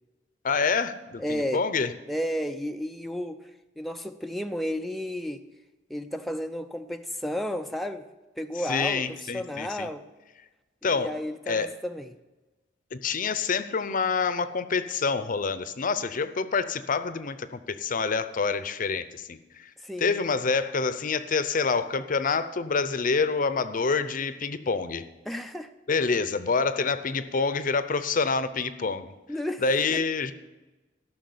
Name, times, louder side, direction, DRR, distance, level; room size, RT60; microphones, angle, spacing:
voice 1, 0.4-1.9 8.7-9.9 10.8-11.1 11.5-11.7 12.9-19.7 20.0-25.0 25.9-29.1 29.6-30.3, left 4 dB, 45° left, 0.6 m, -27 dB
voice 2, 1.2-1.6 2.1-3.5 3.8-5.4 5.9-8.0 8.4-10.0 10.8-12.2 19.8-20.2 25.3-25.7 29.3-29.6 29.9-30.0, equal, ahead, 0.4 m, -32 dB
13.0 x 6.1 x 7.9 m
head